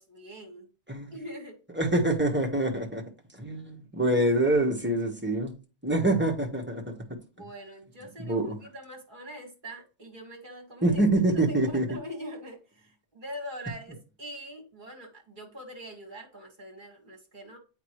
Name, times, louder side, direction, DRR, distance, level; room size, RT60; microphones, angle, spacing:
voice 1, 0.0-0.7 1.1-1.6 7.4-11.0 11.3-17.6, equal, 35° right, 2.1 m, -43 dB
voice 2, 1.8-3.0 3.4-5.5 5.8-6.9 8.2-8.6 10.8-11.8, right 1 dB, 10° right, 1.2 m, -25 dB
8.1 x 4.8 x 3.1 m
omnidirectional pair, 1.4 m